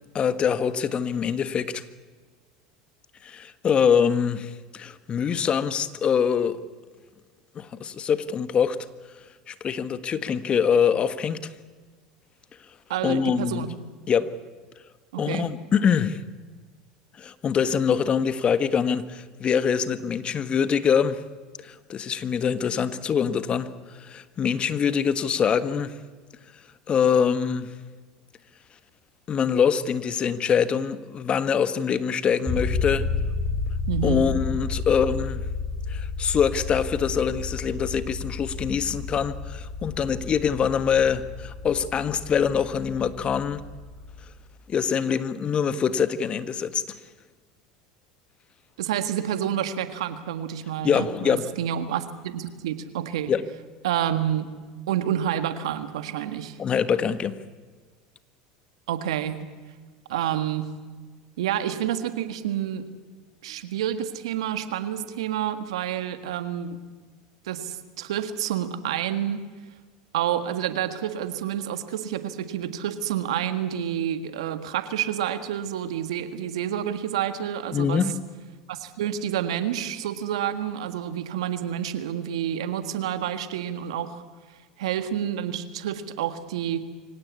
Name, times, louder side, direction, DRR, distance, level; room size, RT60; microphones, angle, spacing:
voice 1, 0.1-1.8 3.2-6.6 7.5-8.9 9.5-11.5 13.0-13.6 14.1-14.3 15.2-16.2 17.2-21.2 21.6-26.0 26.9-27.7 29.3-33.0 34.0-35.4 35.9-43.6 44.7-47.0 50.8-51.5 53.3-53.4 56.6-57.3 77.7-78.1, left 7 dB, 35° left, 1.4 m, -24 dB
voice 2, 12.9-13.7 15.1-15.5 33.9-34.2 48.8-53.3 53.8-54.5 54.9-56.6 58.9-59.5 60.1-60.7 61.4-62.9 63.4-66.8 67.4-69.4 70.1-78.0 78.7-84.2 84.8-86.8, right 10 dB, 80° right, 1.7 m, -29 dB
sound 1, 32.5-44.4, left 4 dB, 5° right, 7.3 m, -31 dB
24.5 x 17.5 x 8.5 m
hypercardioid pair, 85°, 3 cm